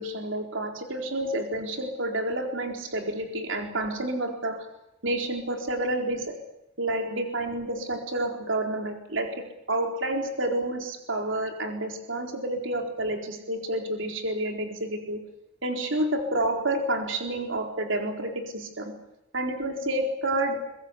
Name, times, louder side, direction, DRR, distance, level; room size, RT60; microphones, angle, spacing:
voice 1, 0.0-4.7 5.0-6.3 6.8-9.3 9.7-15.2 15.6-18.9 19.3-20.6, right 1 dB, 70° right, 3 dB, 4.2 m, -29 dB
23.5 x 21.0 x 8.3 m, 0.88 s
head